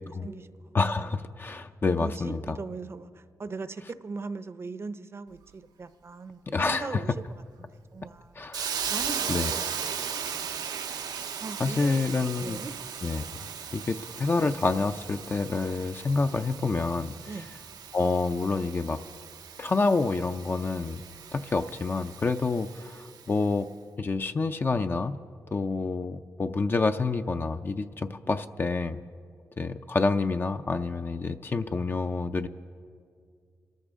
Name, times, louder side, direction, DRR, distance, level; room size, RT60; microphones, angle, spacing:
voice 1, 0.2-0.7 2.0-7.1 7.6-8.4 8.9-9.6 10.0-10.7 11.4-12.7 17.3-17.5, right 4 dB, 40° right, 13 dB, 0.6 m, -40 dB
voice 2, 0.7-2.6 6.5-7.0 8.4-8.8 9.3-9.6 11.6-12.6 13.0-13.3 13.7-17.1 17.9-19.0 19.6-21.0 21.3-23.7 24.0-25.2 25.5-29.0 29.6-32.5, left 3 dB, 35° left, 8 dB, 0.5 m, -28 dB
Hiss, 8.5-23.3, right 7 dB, 90° right, 0.7 m, -37 dB
26.0 x 13.5 x 3.6 m, 2.2 s
cardioid pair, 90°, 7 cm